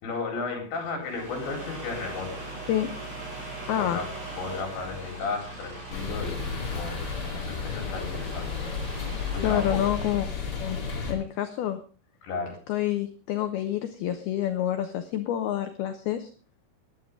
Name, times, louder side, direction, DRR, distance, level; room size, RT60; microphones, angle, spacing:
voice 1, 0.0-2.4 3.8-4.1 4.4-6.5 6.7-7.0 7.3-8.5 8.9-9.8 12.2-12.5, left 4 dB, 65° left, 2 dB, 6.6 m, -34 dB
sound 1, 1.0-10.3, right 2 dB, 70° right, 7.9 m, -40 dB
voice 2, 3.7-4.0 9.4-10.3 10.6-10.8 11.1-11.8 12.7-16.3, left 11 dB, 80° left, 8 dB, 2.2 m, -28 dB
sound 2, 5.9-11.1, left 5 dB, 30° left, 2.1 m, -33 dB
18.5 x 11.5 x 3.7 m, 0.37 s
omnidirectional pair, 5.7 m